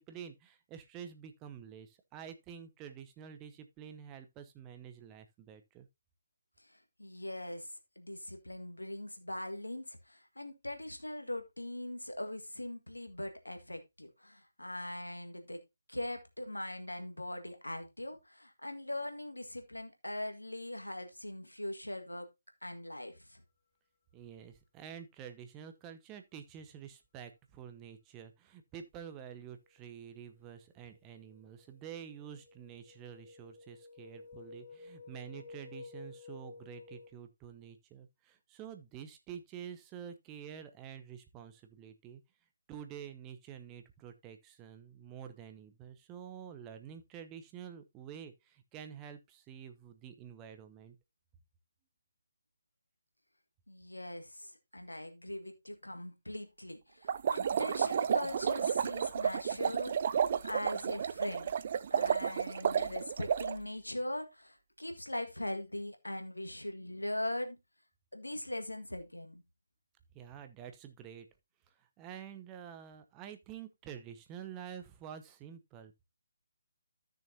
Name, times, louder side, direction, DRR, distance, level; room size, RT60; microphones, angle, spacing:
voice 1, 0.0-5.9 24.1-42.2 42.7-51.0 70.1-71.3 71.7-76.0, right 8 dB, 15° right, 0.9 m, -48 dB
voice 2, 7.0-7.7 7.9-15.6 15.9-22.3 22.6-23.4 53.7-61.5 61.9-67.6 68.1-69.4, left 1 dB, 85° left, 1.8 m, -41 dB
sound 1, 30.0-30.4 30.8-37.1, left 4 dB, 25° left, 2.3 m, -52 dB
sound 2, 57.1-63.6, right 7 dB, 40° right, 0.4 m, -31 dB
13.5 x 6.5 x 2.8 m
figure-of-eight pair, 150°, 0 cm